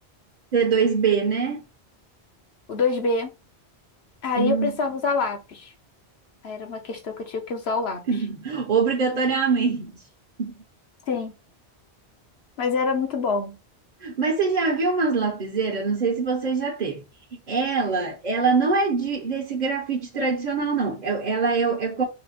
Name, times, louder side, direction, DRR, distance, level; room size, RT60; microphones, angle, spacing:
voice 1, 0.5-1.6 4.4-4.7 8.1-9.9 10.4-10.6 14.0-17.0 17.5-22.0, right 5 dB, 45° right, 0.8 m, -23 dB
voice 2, 2.7-3.3 4.2-5.7 6.4-8.0 11.1-11.3 12.6-13.5, left 4 dB, 70° left, 1.1 m, -26 dB
4.0 x 2.2 x 4.1 m
omnidirectional pair, 1.1 m